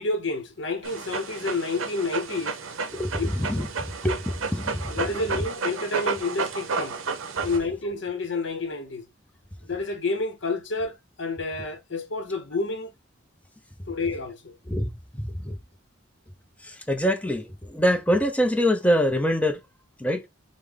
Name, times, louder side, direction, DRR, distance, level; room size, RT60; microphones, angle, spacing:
voice 1, 0.0-2.6 3.6-3.7 4.9-7.0 7.4-9.1 9.6-12.9 13.9-14.6, left 3 dB, 65° left, 0.9 m, -29 dB
Dog, 0.8-7.6, right 4 dB, 90° right, 0.6 m, -31 dB
voice 2, 2.9-4.9 5.3-5.4 14.7-15.6 16.6-19.6 20.0-20.3, equal, 5° left, 0.6 m, -25 dB
5.2 x 2.1 x 3.5 m
head